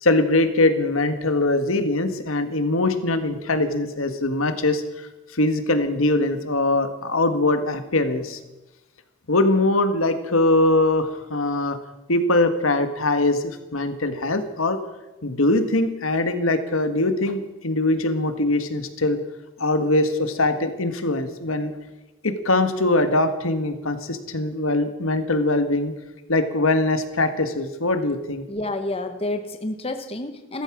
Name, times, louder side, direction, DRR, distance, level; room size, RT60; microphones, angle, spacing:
voice 1, 0.0-8.4 9.3-11.8 12.1-14.8 15.2-19.2 19.6-21.7 22.2-25.9 26.3-28.4, left 2 dB, 80° left, 9 dB, 1.7 m, -22 dB
voice 2, 28.5-30.6, left 2 dB, 30° left, 7 dB, 1.0 m, -29 dB
15.5 x 14.0 x 6.1 m, 1.0 s
head